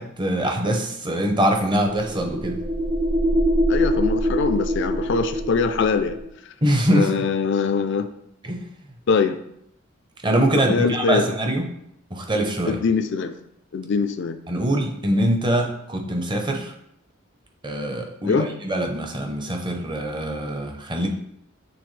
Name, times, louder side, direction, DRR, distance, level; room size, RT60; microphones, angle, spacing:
voice 1, 0.0-2.6 6.6-7.2 8.4-8.6 10.2-11.7 12.1-12.8 14.5-16.7 17.6-21.1, right 1 dB, 25° right, 2 dB, 0.8 m, -23 dB
sound 1, 1.5-6.3, equal, 80° right, 1.9 m, -24 dB
voice 2, 3.7-6.2 6.9-8.1 9.1-9.4 10.5-11.4 12.7-13.3 13.7-14.4 18.3-18.5, left 5 dB, 60° left, 9 dB, 0.4 m, -22 dB
8.7 x 3.5 x 3.2 m, 0.75 s
head